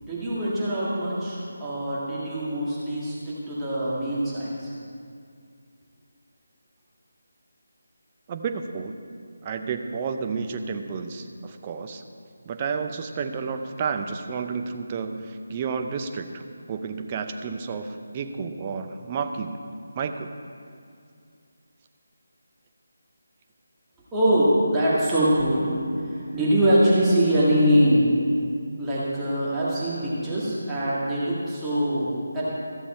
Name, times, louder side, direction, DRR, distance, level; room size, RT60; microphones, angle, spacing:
voice 1, 0.0-4.7 24.1-25.7 26.0-28.1 28.8-32.4, equal, 10° right, -10 dB, 1.9 m, -23 dB
voice 2, 8.3-8.9 9.4-12.0 12.5-16.3 16.7-19.6 20.0-20.3, right 5 dB, 25° right, 6 dB, 0.6 m, -31 dB
14.0 x 7.2 x 4.3 m, 2.3 s
figure-of-eight pair, 165°, 0 cm